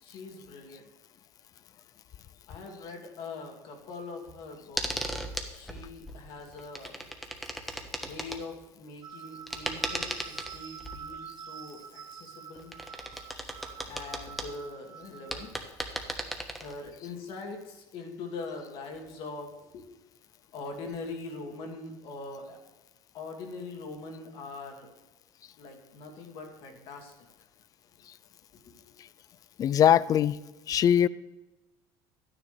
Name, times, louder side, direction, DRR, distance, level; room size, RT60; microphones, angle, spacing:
voice 1, 0.0-0.8 2.5-5.2 5.5-7.0 8.0-12.7 13.9-15.7 16.6-19.9 20.5-22.6 23.1-24.9 25.6-27.1 28.5-28.7, left 3 dB, 65° left, 2 dB, 2.3 m, -42 dB
sound 1, 4.8-6.2 6.5-8.4 9.5-11.0 12.6-14.5 15.0-15.1 15.3-16.9 19.1-19.2, equal, ahead, 1.2 m, -36 dB
sound 2, 9.0-15.5, right 8 dB, 50° right, 0.9 m, -46 dB
voice 2, 29.6-30.4 30.7-31.1, left 10 dB, 40° left, 19 dB, 0.4 m, -21 dB
11.0 x 9.8 x 3.4 m, 1.0 s
supercardioid pair, 110°, 10 cm